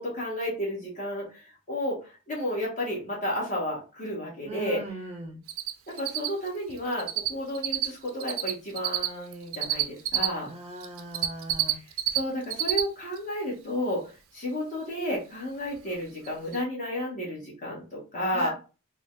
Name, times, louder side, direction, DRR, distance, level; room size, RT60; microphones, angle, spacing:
voice 1, 0.0-4.8 5.9-10.5 12.1-18.5, left 1 dB, 35° left, -4 dB, 1.4 m, -32 dB
voice 2, 4.4-5.4 10.4-11.8 18.3-18.5, right 2 dB, 30° right, 2 dB, 0.6 m, -38 dB
Cricket, 5.5-5.7 6.0-7.3 7.5-10.3 10.8-12.2 12.4-12.8 13.2-13.3 15.8-15.9 16.2-16.3 16.5-16.6, right 13 dB, 75° right, 0.5 m, -27 dB
3.7 x 2.3 x 2.6 m, 0.33 s
head